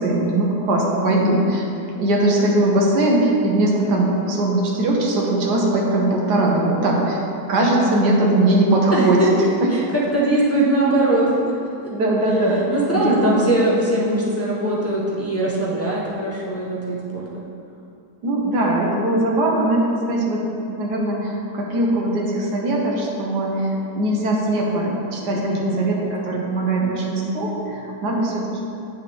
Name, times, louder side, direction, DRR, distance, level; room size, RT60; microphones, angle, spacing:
voice 1, 0.0-1.6 2.0-7.2 7.5-9.2 11.9-12.6 12.9-13.4 18.2-20.4 20.8-28.6, right 1 dB, 70° right, -2 dB, 1.6 m, -20 dB
voice 2, 8.9-9.3 9.7-9.8 10.1-11.5 12.7-17.4 25.3-25.9, right 1 dB, 15° left, -6 dB, 0.6 m, -21 dB
8.4 x 5.9 x 3.4 m, 2.7 s
omnidirectional pair, 1.8 m